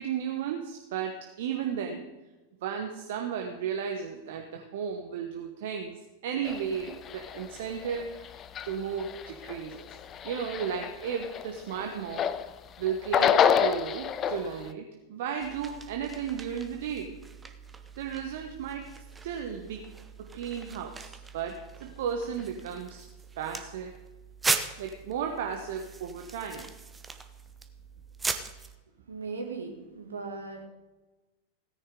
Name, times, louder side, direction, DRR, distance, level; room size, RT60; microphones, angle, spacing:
voice 1, 0.0-2.0 2.6-10.0 10.2-12.3 12.8-17.2 18.0-18.9 19.2-19.9 20.2-23.0 23.4-23.9 24.8-26.7, right 7 dB, 55° right, 3 dB, 1.2 m, -34 dB
School Heater, 6.4-12.5 12.9-14.5, left 8 dB, 30° left, 0.6 m, -28 dB
sound 1, 15.4-28.7, right 4 dB, 15° right, 0.9 m, -39 dB
voice 2, 29.1-30.7, right 4 dB, 70° right, 3 dB, 2.1 m, -38 dB
17.0 x 9.9 x 3.8 m, 1.1 s
figure-of-eight pair, 90°, 0 cm